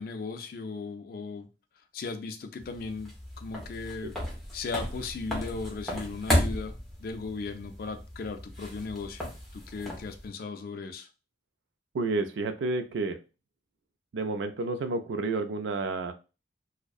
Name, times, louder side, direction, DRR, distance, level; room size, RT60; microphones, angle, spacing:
voice 1, 0.0-1.5 1.9-4.2 4.5-11.1, left 4 dB, 55° left, 0.3 m, -37 dB
sound 1, 2.6-10.3, equal, ahead, 0.6 m, -34 dB
voice 2, 11.9-13.2 14.1-16.1, right 3 dB, 80° right, 0.4 m, -30 dB
2.6 x 2.0 x 2.3 m
head